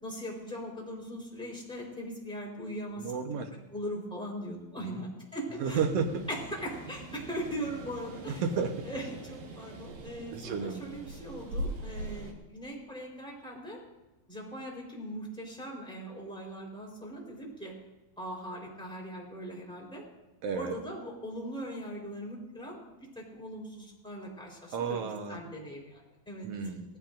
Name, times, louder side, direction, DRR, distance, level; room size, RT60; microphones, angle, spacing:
voice 1, 0.0-3.3 3.7-5.8 6.3-8.4 8.9-13.8 14.3-17.7 18.2-20.0 20.5-25.0 25.3-26.5, equal, ahead, -3 dB, 3.5 m, -40 dB
voice 2, 3.0-3.5 4.9-5.0 5.6-6.2 8.4-8.9 10.3-10.9 20.4-20.8 24.7-25.4 26.4-27.0, right 5 dB, 75° right, 4 dB, 1.4 m, -32 dB
sound 1, 5.6-12.3, right 1 dB, 60° right, 2.6 m, -42 dB
19.0 x 16.0 x 2.6 m, 1.1 s
omnidirectional pair, 4.4 m